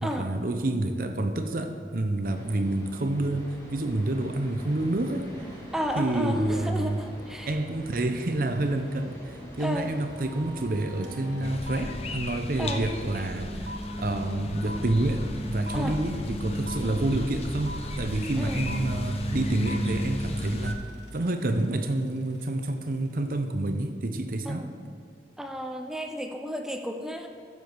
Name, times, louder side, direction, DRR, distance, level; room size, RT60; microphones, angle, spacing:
voice 1, 0.0-5.3 6.0-7.0 7.5-13.7 14.0-20.8 21.1-24.7, right 1 dB, 55° right, 7 dB, 0.7 m, -28 dB
sound 1, 2.2-11.6, equal, 15° left, 2.3 m, -45 dB
voice 2, 5.7-7.6 9.6-9.9 12.6-12.9 15.7-16.0 16.8-17.0 18.4-19.0 24.4-24.8 25.4-27.3, equal, 5° right, 4 dB, 0.6 m, -33 dB
sound 2, 11.0-11.1 11.3-22.5, equal, 85° right, 1.3 m, -44 dB
sound 3, 11.4-20.7, left 1 dB, 35° left, 0.7 m, -33 dB
14.5 x 6.8 x 4.6 m, 2.3 s
head